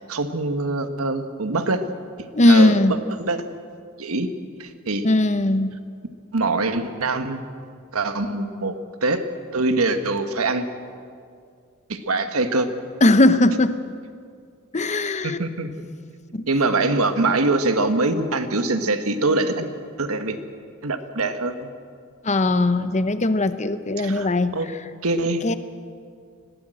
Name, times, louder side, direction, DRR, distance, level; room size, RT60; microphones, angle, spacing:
voice 1, 0.1-1.8 2.5-3.4 4.0-4.3 4.6-5.0 6.3-7.4 7.9-9.2 9.5-10.6 11.9-12.7 15.2-15.7 16.5-19.7 20.0-20.4 20.8-21.7 24.0-24.3 24.5-24.7 25.0-25.4, right 2 dB, 75° right, 8 dB, 1.4 m, -23 dB
voice 2, 2.3-2.9 5.0-5.7 13.0-13.8 14.7-15.4 16.3-16.4 22.2-24.6 25.4-25.6, left 1 dB, 30° left, 11 dB, 0.8 m, -18 dB
21.0 x 17.5 x 7.8 m, 2.2 s
head